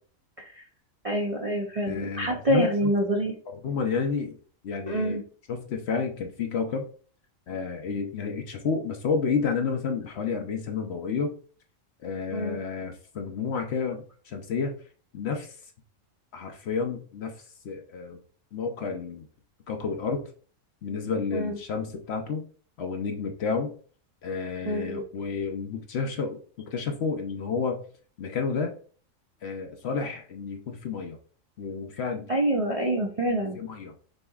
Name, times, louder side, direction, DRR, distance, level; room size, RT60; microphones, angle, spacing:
voice 1, 1.0-3.3 4.8-5.2 12.3-12.6 21.3-21.6 24.6-25.0 32.3-33.6, right 1 dB, 45° right, -2 dB, 0.4 m, -26 dB
voice 2, 1.9-2.9 3.5-4.4 4.6-5.2 5.5-6.9 7.5-11.3 12.0-14.8 15.1-15.5 16.3-17.3 17.6-18.2 18.5-19.3 19.7-20.3 20.8-22.4 22.8-23.7 24.2-27.8 28.2-28.7 29.4-31.2 31.6-32.3 33.5-33.9, left 5 dB, 60° left, 5 dB, 0.8 m, -30 dB
6.3 x 2.9 x 2.3 m, 0.43 s
omnidirectional pair, 1.4 m